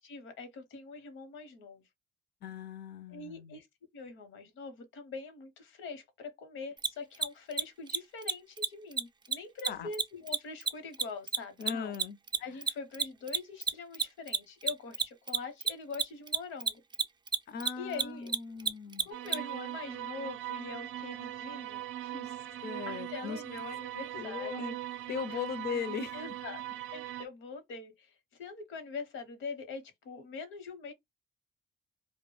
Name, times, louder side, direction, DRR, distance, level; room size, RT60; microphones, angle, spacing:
voice 1, 0.0-1.8 3.1-3.7 3.9-11.9 12.4-16.8 17.8-18.3 19.0-24.5 25.3-25.4 26.1-26.6 26.9-28.1 28.4-30.9, left 4 dB, 85° left, 0.8 m, -43 dB
voice 2, 2.4-3.6 9.7-9.9 11.6-12.2 17.5-19.1 22.6-23.4 24.1-24.8 25.1-26.2, left 6 dB, 55° left, 0.5 m, -38 dB
Mechanisms, 6.8-6.9 7.1-7.3 7.5-7.6 7.9-8.0 8.2-8.3 8.6-8.7 8.9-9.0 9.3-12.0 12.3-19.4, right 6 dB, 20° right, 0.4 m, -29 dB
sound 1, 19.1-27.3, right 13 dB, 85° right, 0.4 m, -40 dB
2.2 x 2.1 x 3.0 m
cardioid pair, 90°, 20 cm